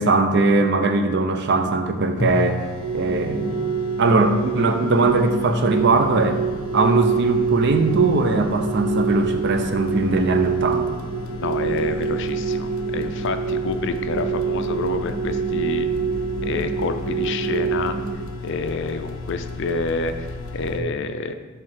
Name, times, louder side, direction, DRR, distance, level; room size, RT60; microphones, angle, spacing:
voice 1, 0.0-2.7 2.9-3.5 4.0-6.4 6.7-11.0, right 3 dB, 55° right, 7 dB, 0.6 m, -20 dB
sound 1, 1.9-2.0 2.2-20.8, left 3 dB, 90° left, 0.8 m, -34 dB
sound 2, 2.8-18.1, right 6 dB, 75° right, 1.8 m, -26 dB
voice 2, 11.4-15.9 16.4-18.0 18.4-20.3 20.5-21.3, left 4 dB, 60° left, 9 dB, 0.5 m, -28 dB
7.7 x 3.2 x 5.7 m, 1.3 s
head